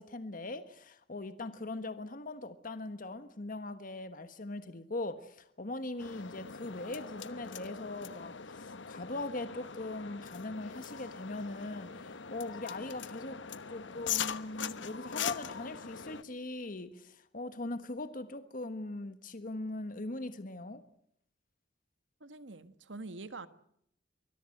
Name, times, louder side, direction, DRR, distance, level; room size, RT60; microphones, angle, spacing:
voice 1, 0.0-13.4 13.7-20.8, left 2 dB, 50° left, 1.3 m, -40 dB
sound 1, 6.0-16.2, left 7 dB, 85° left, 1.1 m, -41 dB
voice 2, 22.2-23.5, right 3 dB, 85° right, 1.5 m, -45 dB
24.5 x 21.5 x 7.8 m
head